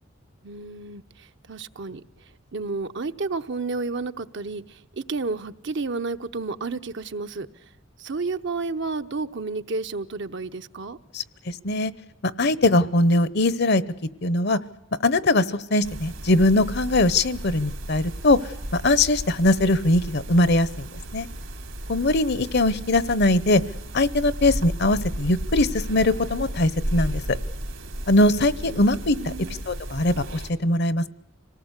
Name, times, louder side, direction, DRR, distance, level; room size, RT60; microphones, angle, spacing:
voice 1, 0.4-1.0 1.5-2.0 2.5-4.6 5.1-7.5 8.0-11.0 22.5-22.6 28.6-28.9 29.1-29.6, right 3 dB, 65° right, 9 dB, 0.9 m, -31 dB
voice 2, 11.1-11.9 12.4-13.8 14.2-14.6 15.0-18.4 18.7-20.8 21.1-21.3 21.9-23.6 23.9-27.2 28.1-29.3 29.7-31.1, left 2 dB, 55° left, 17 dB, 0.9 m, -21 dB
sound 1, 15.8-30.5, right 1 dB, 80° right, 3.3 m, -34 dB
26.5 x 18.5 x 8.2 m, 0.95 s
head